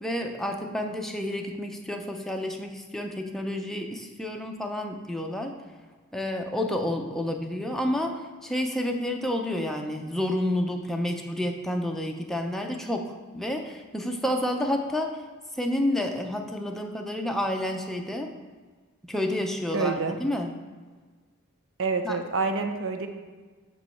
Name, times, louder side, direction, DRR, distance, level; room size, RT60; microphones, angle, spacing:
voice 1, 0.0-5.5 6.1-15.2 15.6-18.3 19.1-20.5 22.0-22.2, left 1 dB, ahead, 2 dB, 0.6 m, -30 dB
voice 2, 19.7-20.2 21.8-23.1, right 4 dB, 65° right, 6 dB, 0.7 m, -27 dB
9.0 x 3.1 x 5.7 m, 1.4 s
head